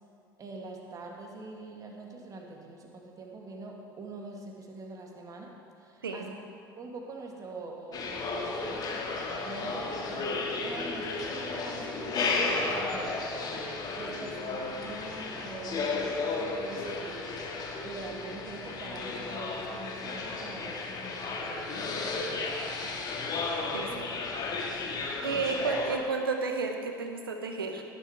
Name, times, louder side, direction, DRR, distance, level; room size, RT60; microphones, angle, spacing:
voice 1, 0.4-6.4 6.8-10.3 10.6-13.6 14.0-17.3 17.8-23.0 25.3-25.6, right 2 dB, 30° right, 1 dB, 2.0 m, -44 dB
sound 1, 7.9-26.0, left 3 dB, 35° left, 1.7 m, -33 dB
voice 2, 23.7-24.1 25.2-27.8, right 4 dB, 75° right, 5 dB, 1.1 m, -32 dB
18.5 x 7.4 x 4.8 m, 2.8 s
figure-of-eight pair, 70°, 12 cm